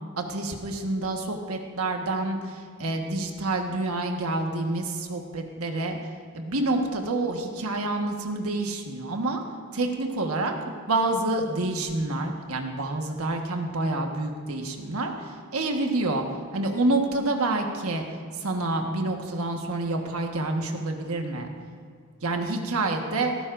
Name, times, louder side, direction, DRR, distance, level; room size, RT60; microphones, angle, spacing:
voice 1, 0.2-6.0 6.3-9.4 9.7-10.5 10.9-16.3 16.5-18.0 18.4-21.5 22.2-23.3, right 2 dB, 80° right, 3 dB, 1.4 m, -28 dB
17.0 x 14.5 x 2.6 m, 2.2 s
head